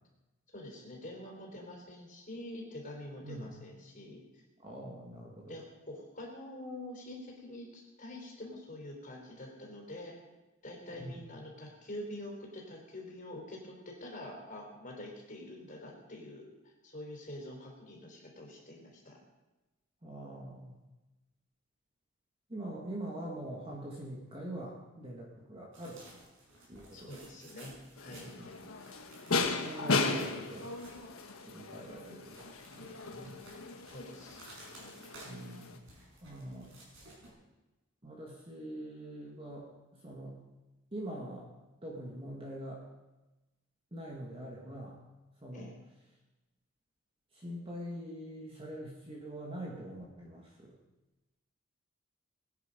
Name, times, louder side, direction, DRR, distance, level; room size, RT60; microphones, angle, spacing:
voice 1, 0.5-4.4 5.5-10.1 10.6-19.2 26.9-27.7 28.0-28.3 33.9-34.4 34.8-35.0 45.5-45.7, left 1 dB, 40° left, 0 dB, 3.8 m, -46 dB
voice 2, 3.2-3.5 4.6-5.5 10.9-11.3 20.0-20.7 22.5-26.3 26.7-27.2 28.2-28.8 29.3-30.7 31.4-33.4 35.2-35.8 36.2-36.7 38.0-39.7 39.9-40.4 40.9-41.5 41.8-42.8 43.9-45.0 45.4-45.7 47.3-50.7, right 1 dB, 25° right, -2 dB, 2.0 m, -44 dB
sound 1, 25.7-31.5 31.8-37.3, right 1 dB, 65° right, 5.9 m, -56 dB
sound 2, 28.0-35.8, left 3 dB, 90° left, 1.4 m, -36 dB
22.0 x 9.5 x 5.3 m, 1.1 s
head